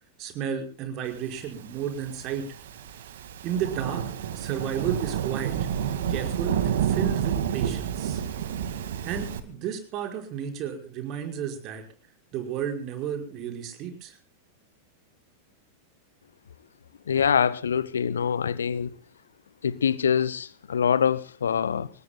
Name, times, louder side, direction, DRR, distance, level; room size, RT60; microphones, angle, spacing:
voice 1, 0.2-2.5 3.4-4.0 4.4-5.7 6.1-8.2 9.0-11.8 12.3-14.2, right 8 dB, 40° right, 5.4 m, -32 dB
Thunderstorm / Rain, 1.7-9.4, right 9 dB, 60° right, 2.0 m, -29 dB
voice 2, 17.1-18.9 19.6-21.9, left 7 dB, 70° left, 0.8 m, -24 dB
26.0 x 20.0 x 2.3 m
figure-of-eight pair, 90°, 0 cm